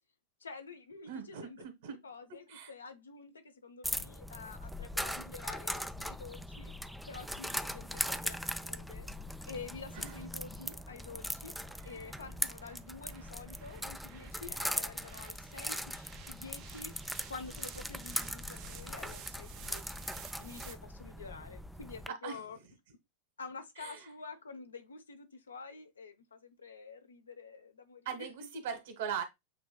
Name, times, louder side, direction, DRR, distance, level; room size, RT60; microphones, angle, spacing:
voice 1, 0.4-1.6 2.0-6.7 7.1-9.1 9.4-11.5 11.8-16.9 17.3-20.1 20.4-22.6 23.4-28.5, left 4 dB, 70° left, 0.7 m, -48 dB
voice 2, 1.0-2.0 2.5-2.7 9.9-10.2 11.8-12.1 22.1-22.4 23.8-24.1 28.0-29.2, right 7 dB, 55° right, 1.3 m, -40 dB
sound 1, 3.8-22.1, equal, ahead, 0.3 m, -40 dB
sound 2, 7.0-20.8, right 9 dB, 40° right, 0.7 m, -55 dB
7.5 x 3.1 x 2.2 m
figure-of-eight pair, 90°, 0 cm